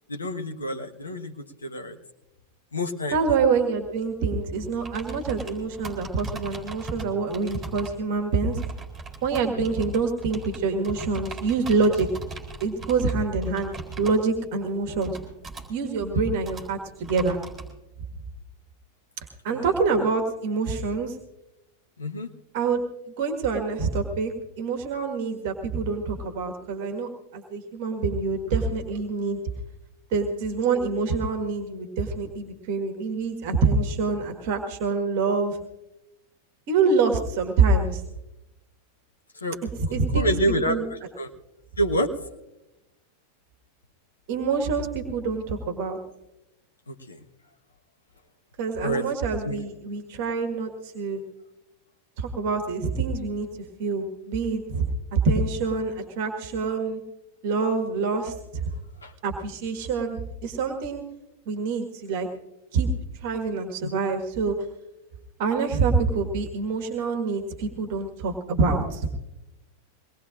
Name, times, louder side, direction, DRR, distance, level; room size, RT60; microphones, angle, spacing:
voice 1, 0.1-1.3 1.6-2.0 2.7-3.2 19.5-19.6 22.0-22.3 39.4-39.6 40.1-41.3 41.8-42.1 46.9-47.2 48.8-49.0 49.4-49.6 59.0-59.1 63.8-63.9, equal, 75° left, 4 dB, 1.2 m, -27 dB
voice 2, 3.1-8.6 9.2-12.1 12.6-15.2 15.7-17.4 19.4-21.2 22.5-22.8 23.2-29.4 30.1-35.6 36.7-38.0 39.6-40.3 40.7-40.9 44.3-46.0 48.6-51.2 52.2-53.5 53.8-57.0 57.4-58.7 59.2-61.0 61.5-62.3 62.7-64.6 65.4-69.1, right 4 dB, 45° right, 5 dB, 1.6 m, -26 dB
sound 1, 3.5-17.7, right 3 dB, 15° right, 4.0 m, -40 dB
23.5 x 19.5 x 2.5 m, 0.94 s
figure-of-eight pair, 90°, 0 cm